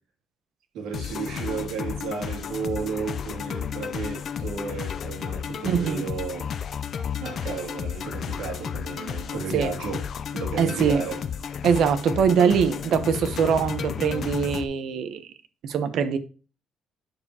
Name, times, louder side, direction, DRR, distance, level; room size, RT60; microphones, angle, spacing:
voice 1, 0.7-6.5 7.2-10.1 10.3-11.2, right 5 dB, 80° right, 2.5 m, -33 dB
sound 1, 0.9-14.6, left 7 dB, 45° left, 0.5 m, -32 dB
voice 2, 5.6-6.1 9.5-9.7 10.6-11.0 11.6-15.3 15.6-16.2, right 7 dB, 65° right, 0.9 m, -23 dB
9.7 x 6.6 x 2.8 m
cardioid pair, 145°, 0 cm